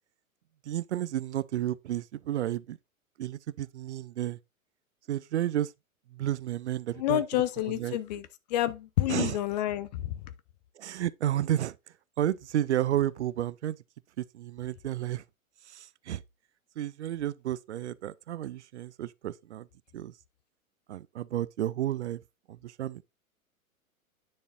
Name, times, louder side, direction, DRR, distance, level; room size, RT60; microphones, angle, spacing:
voice 1, 0.7-2.8 3.2-4.4 5.1-5.7 6.1-7.4 7.8-8.0 9.1-9.4 10.8-11.7 12.2-13.8 14.2-15.2 15.7-16.2 16.8-19.7 19.9-20.1 20.9-22.2 22.5-23.0, right 12 dB, 55° right, 0.5 m, -32 dB
voice 2, 7.0-10.3, left 14 dB, 30° left, 0.5 m, -29 dB
9.7 x 6.5 x 2.5 m
figure-of-eight pair, 100°, 42 cm